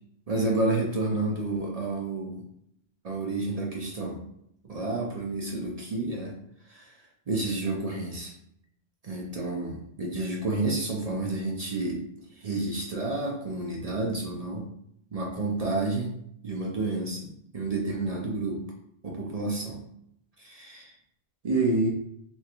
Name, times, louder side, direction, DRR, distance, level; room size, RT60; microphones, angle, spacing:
voice 1, 0.3-2.4 3.0-4.2 4.6-6.3 6.7-6.9 7.3-8.3 9.0-12.0 12.4-14.7 15.1-16.1 16.4-18.6 19.0-19.8 20.4-20.9 21.4-21.9, right 2 dB, 50° right, -1 dB, 0.5 m, -30 dB
3.1 x 3.0 x 2.4 m, 0.71 s
omnidirectional pair, 1.1 m